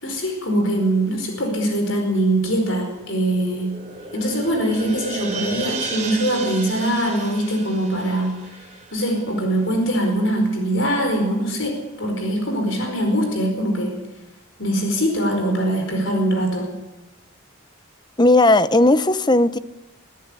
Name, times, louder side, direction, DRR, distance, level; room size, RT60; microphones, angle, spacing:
voice 1, 0.0-3.8 4.1-8.4 8.9-13.9 14.6-16.7, right 1 dB, 65° left, 3 dB, 4.8 m, -22 dB
sound 1, 2.8-9.8 10.1-10.2, right 4 dB, 30° right, 4.8 m, -34 dB
voice 2, 18.2-19.6, left 2 dB, 20° left, 14 dB, 0.7 m, -15 dB
23.5 x 14.0 x 9.9 m, 1.0 s
head